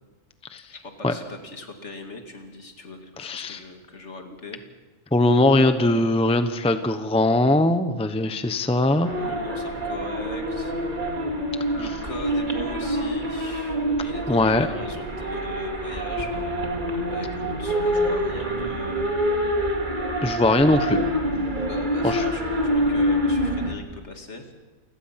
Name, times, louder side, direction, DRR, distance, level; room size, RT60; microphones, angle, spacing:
voice 1, 0.7-4.6 9.2-10.7 11.7-16.3 17.1-19.3 21.6-22.4 22.9-24.5, left 2 dB, 60° left, 5 dB, 2.4 m, -39 dB
voice 2, 3.2-3.6 5.1-9.1 14.3-14.7 20.2-21.0 22.0-22.2, left 2 dB, 5° left, 9 dB, 0.8 m, -20 dB
sound 1, 9.0-23.7, equal, 35° right, 2.3 m, -26 dB
28.5 x 17.0 x 5.9 m, 1.2 s
omnidirectional pair, 1.4 m